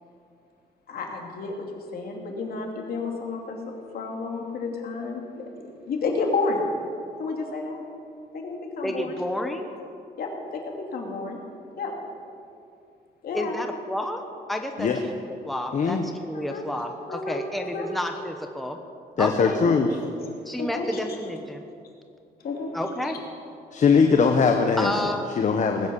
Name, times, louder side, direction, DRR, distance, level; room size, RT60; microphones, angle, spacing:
voice 1, 0.9-3.6 3.9-5.4 5.9-6.6 7.2-7.8 8.3-9.2 10.2-11.4 11.8-11.9 13.2-13.5 16.3-16.7 17.1-17.9 19.4-19.7 20.6-21.0 22.4-22.7, left 3 dB, 65° left, 1 dB, 2.8 m, -31 dB
voice 2, 8.8-9.7 13.3-14.2 14.5-15.2 15.4-18.8 19.2-19.6 20.4-21.6 22.7-23.2 24.8-25.5, left 1 dB, ahead, 4 dB, 1.1 m, -30 dB
voice 3, 15.7-16.0 19.2-19.9 23.7-25.1 25.4-25.9, left 5 dB, 45° left, 4 dB, 1.1 m, -20 dB
19.5 x 9.4 x 7.1 m, 2.5 s
cardioid pair, 120°, 17 cm